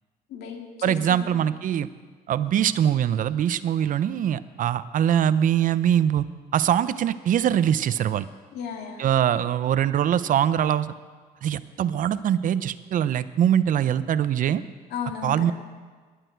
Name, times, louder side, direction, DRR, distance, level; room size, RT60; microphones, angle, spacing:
voice 1, 0.3-1.4 8.5-9.0 14.9-15.5, left 7 dB, 80° left, 2 dB, 2.3 m, -35 dB
voice 2, 0.8-1.9 2.3-6.2 6.5-8.3 9.0-10.9 11.4-14.6 15.2-15.5, right 10 dB, 50° right, 15 dB, 0.6 m, -23 dB
19.0 x 11.5 x 4.6 m, 1.5 s
cardioid pair, 110°, 17 cm